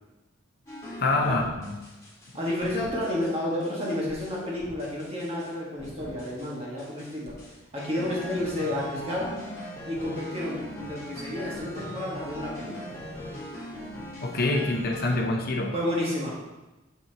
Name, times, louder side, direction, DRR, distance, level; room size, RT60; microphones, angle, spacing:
sound 1, 0.7-2.3 2.6-3.3 3.6-5.5 5.8-6.5 6.8-15.2, equal, 15° left, 1.9 m, -40 dB
voice 1, 1.0-1.7 14.2-15.7, left 2 dB, 50° left, 2 dB, 0.7 m, -26 dB
voice 2, 2.3-7.4 7.7-9.4 9.9-13.0 15.7-16.4, left 1 dB, 30° right, -4 dB, 1.6 m, -31 dB
7.1 x 5.5 x 2.9 m, 1.1 s
head